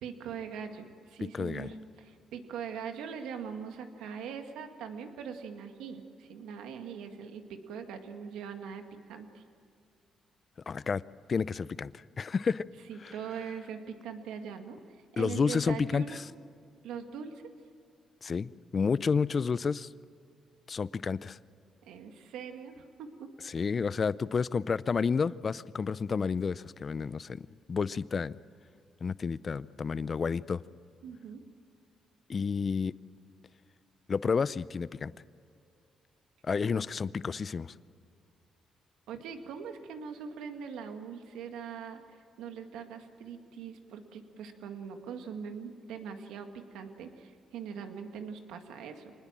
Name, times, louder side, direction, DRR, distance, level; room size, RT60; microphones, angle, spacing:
voice 1, 0.0-8.8 9.1-9.4 12.9-16.2 16.8-17.4 21.8-23.3 23.5-23.7 31.0-31.4 39.1-49.1, right 7 dB, 90° right, 2.0 m, -42 dB
voice 2, 1.3-1.7 10.7-11.0 11.3-12.6 13.0-13.1 15.2-16.2 18.2-19.9 20.7-21.4 23.4-28.4 29.0-30.6 32.3-32.9 34.1-35.1 36.4-37.7, left 5 dB, 40° left, 0.6 m, -30 dB
26.0 x 20.5 x 7.5 m
cardioid pair, 90°, 0 cm